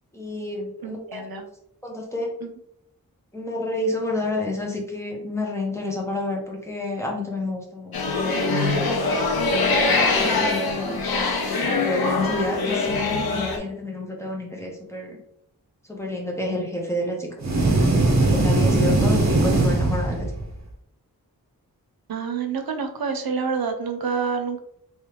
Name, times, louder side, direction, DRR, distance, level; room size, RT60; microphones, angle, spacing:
voice 1, 0.1-1.3 1.8-2.3 3.3-9.2 9.7-11.0 11.6-15.2 15.9-17.4 18.2-20.3, left 1 dB, 10° left, -1 dB, 1.1 m, -29 dB
voice 2, 0.8-1.4 2.4-2.5 22.1-24.6, right 5 dB, 80° right, 6 dB, 0.7 m, -27 dB
sound 1, 7.9-13.6, left 3 dB, 85° left, 0.8 m, -23 dB
sound 2, 17.4-20.6, right 2 dB, 50° right, 0.8 m, -20 dB
3.3 x 3.1 x 3.1 m, 0.73 s
wide cardioid pair, 80°, 36 cm